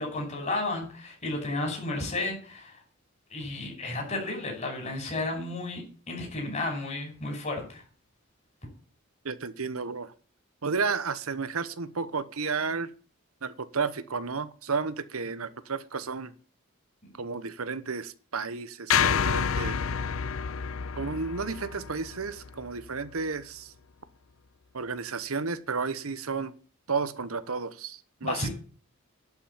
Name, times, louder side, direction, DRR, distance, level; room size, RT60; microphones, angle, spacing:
voice 1, 0.0-2.8 3.3-7.8 28.2-28.5, left 2 dB, 35° left, 5.8 m, -32 dB
voice 2, 9.2-10.1 10.6-12.9 13.4-16.3 17.2-19.8 21.0-23.7 24.7-26.5 26.9-28.5, right 4 dB, 75° right, 1.0 m, -32 dB
sound 1, 18.9-23.2, left 7 dB, 70° left, 0.6 m, -29 dB
11.5 x 6.1 x 8.8 m
head